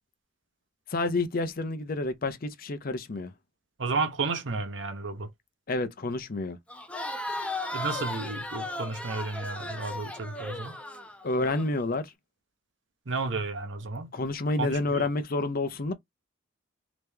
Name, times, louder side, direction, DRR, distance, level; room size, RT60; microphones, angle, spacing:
voice 1, 0.9-3.3 5.7-6.6 11.2-12.1 14.1-15.9, left 2 dB, 50° left, 0.6 m, -29 dB
voice 2, 3.8-5.3 7.7-10.8 13.1-14.1 14.6-15.1, right 3 dB, 70° right, 0.8 m, -32 dB
Crowd, 6.7-11.7, left 2 dB, 5° left, 0.6 m, -36 dB
3.3 x 3.0 x 3.4 m
head